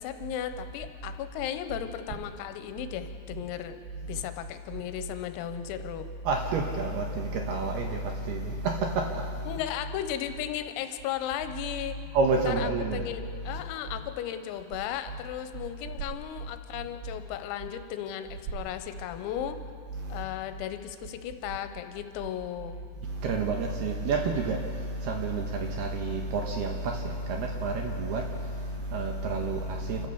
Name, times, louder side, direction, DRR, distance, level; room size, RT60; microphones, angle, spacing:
voice 1, 0.0-3.8 4.1-6.1 9.5-12.0 12.5-19.6 20.1-22.8, left 10 dB, 90° left, 9 dB, 3.7 m, -35 dB
voice 2, 6.2-9.6 11.9-13.1 13.4-13.6 16.7-16.8 19.9-20.2 22.9-30.1, right 3 dB, 75° right, 2 dB, 2.5 m, -30 dB
27.0 x 14.5 x 7.0 m, 2.3 s
omnidirectional pair, 6.0 m